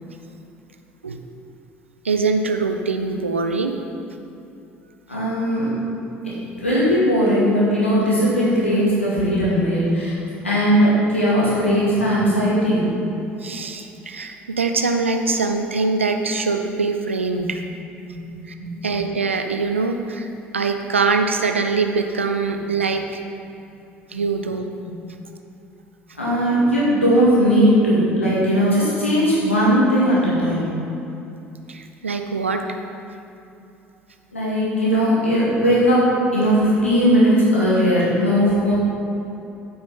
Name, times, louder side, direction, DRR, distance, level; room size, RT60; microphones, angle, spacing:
voice 1, 2.0-3.7 13.4-17.6 18.5-18.6 18.8-23.2 24.1-24.7 31.7-32.8, right 4 dB, 85° right, 6 dB, 0.5 m, -23 dB
voice 2, 5.1-5.7 6.2-6.3 6.6-10.2 10.4-12.9 18.1-18.2 18.6-18.7 26.2-30.8 34.3-38.7, equal, 90° left, -8 dB, 2.1 m, -18 dB
8.8 x 5.5 x 5.7 m, 2.8 s
figure-of-eight pair, 55°, 7 cm